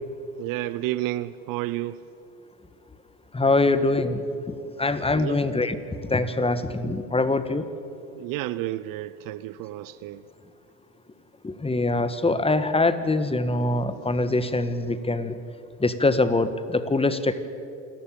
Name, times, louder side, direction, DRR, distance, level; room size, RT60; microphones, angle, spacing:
voice 1, 0.4-2.0 5.1-5.4 8.1-10.2, right 16 dB, 50° right, 17 dB, 0.8 m, -31 dB
voice 2, 3.3-4.2 4.5-7.6 11.4-15.4 15.8-17.4, left 2 dB, 15° left, 12 dB, 1.6 m, -24 dB
27.5 x 14.5 x 8.8 m, 2.7 s
hypercardioid pair, 75°, 43 cm